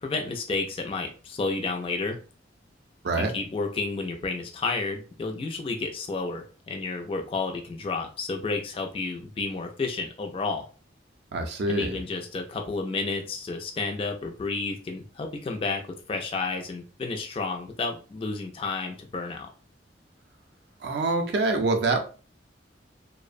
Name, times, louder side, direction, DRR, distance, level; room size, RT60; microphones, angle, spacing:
voice 1, 0.0-2.2 3.2-10.7 11.7-19.5, left 3 dB, 30° left, 3 dB, 0.3 m, -31 dB
voice 2, 11.3-12.0 20.8-22.0, right 2 dB, 60° right, 4 dB, 0.4 m, -25 dB
2.5 x 2.0 x 2.4 m, 0.37 s
head